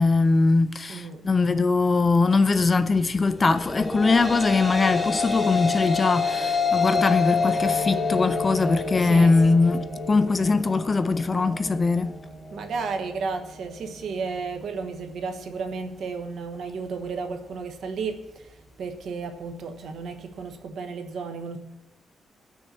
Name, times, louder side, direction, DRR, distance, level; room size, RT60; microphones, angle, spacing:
voice 1, 0.0-12.2, left 3 dB, 25° left, 0.4 m, -21 dB
voice 2, 0.9-1.2 9.0-9.4 12.5-18.3 18.8-21.6, right 4 dB, 65° right, 1.1 m, -33 dB
sound 1, 3.6-12.2, left 4 dB, ahead, 1.1 m, -27 dB
19.5 x 6.6 x 4.3 m
wide cardioid pair, 165°, 0 cm